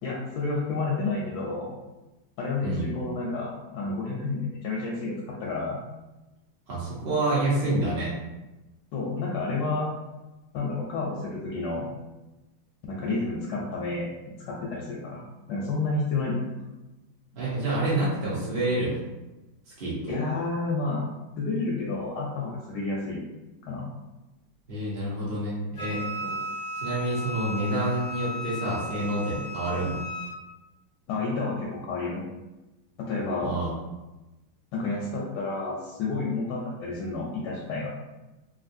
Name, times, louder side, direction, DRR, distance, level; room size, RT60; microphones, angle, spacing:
voice 1, 0.0-1.8 2.4-5.8 8.9-9.9 10.5-11.9 12.9-15.2 15.5-16.5 20.1-21.0 21.4-23.2 23.6-23.9 26.2-26.4 31.1-32.2 33.0-33.5 34.7-37.9, left 3 dB, 75° left, -3 dB, 1.1 m, -30 dB
voice 2, 6.7-8.1 17.4-19.0 19.8-20.1 24.7-26.0 26.8-30.0 33.4-33.7, right 2 dB, 65° right, -8 dB, 0.5 m, -28 dB
Wind instrument woodwind instrument, 25.8-30.4, left 1 dB, 55° left, 0.8 m, -35 dB
3.2 x 2.6 x 2.6 m, 1.1 s
omnidirectional pair, 2.3 m